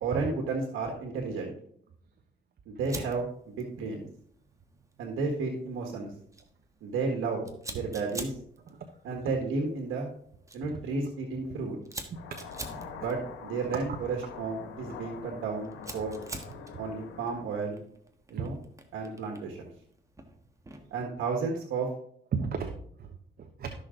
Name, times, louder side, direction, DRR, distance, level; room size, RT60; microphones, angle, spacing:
voice 1, 0.0-1.5 2.7-4.1 5.0-6.1 6.8-8.3 9.0-10.1 10.5-11.8 12.9-16.2 16.8-17.8 18.3-18.6 18.9-19.7 20.9-21.9, right 4 dB, 85° right, 1 dB, 1.7 m, -32 dB
Fire, 2.8-21.0, right 2 dB, 15° right, 1.4 m, -48 dB
sound 1, 12.1-17.4, left 6 dB, 85° left, 1.4 m, -45 dB
voice 2, 22.3-23.8, right 5 dB, 50° right, 5 dB, 1.1 m, -35 dB
12.5 x 6.4 x 3.8 m, 0.64 s
cardioid pair, 90°, 20 cm